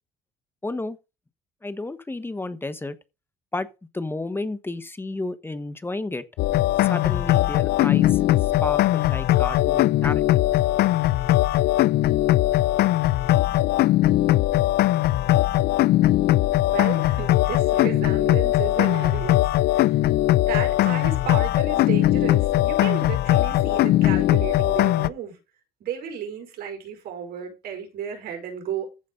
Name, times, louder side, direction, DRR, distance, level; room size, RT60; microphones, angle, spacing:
voice 1, 0.6-1.0 1.6-3.0 3.5-3.7 3.9-6.2 6.8-8.2 8.6-10.2, left 2 dB, 15° left, 1.2 m, -31 dB
sound 1, 6.4-25.1, left 15 dB, 70° left, 0.6 m, -20 dB
voice 2, 16.7-19.5 19.7-20.0 20.3-25.4 25.8-28.9, right 8 dB, 65° right, 5.5 m, -33 dB
15.0 x 5.2 x 3.9 m
cardioid pair, 110°, 17 cm